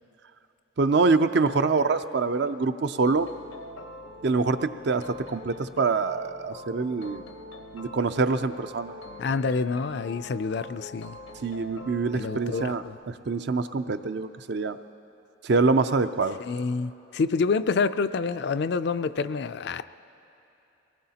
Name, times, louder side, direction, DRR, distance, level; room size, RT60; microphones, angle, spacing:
voice 1, 0.8-3.3 4.2-7.2 7.7-8.9 11.4-14.8 15.4-16.4, right 4 dB, 55° right, 0.5 m, -25 dB
sound 1, 3.0-12.9, left 2 dB, 90° left, 0.9 m, -43 dB
voice 2, 9.2-11.2 12.1-13.0 16.4-19.8, left 4 dB, 55° left, 0.3 m, -27 dB
22.5 x 19.0 x 2.9 m
head